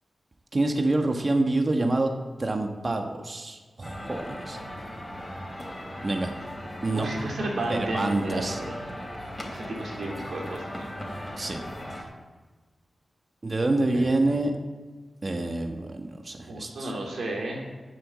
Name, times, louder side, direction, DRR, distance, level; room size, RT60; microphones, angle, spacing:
voice 1, 0.5-2.1 2.4-4.6 6.0-6.3 6.8-7.1 7.7-8.6 11.4-11.6 13.4-14.5 15.2-16.9, right 2 dB, 45° right, 4 dB, 1.4 m, -27 dB
sound 1, 3.8-12.0, equal, 20° left, 3.5 m, -38 dB
voice 2, 6.9-8.7 9.5-10.9 13.9-14.0 16.5-17.7, right 2 dB, 80° right, -1 dB, 2.9 m, -33 dB
7.9 x 7.7 x 7.4 m, 1.4 s
cardioid pair, 40°, 0 cm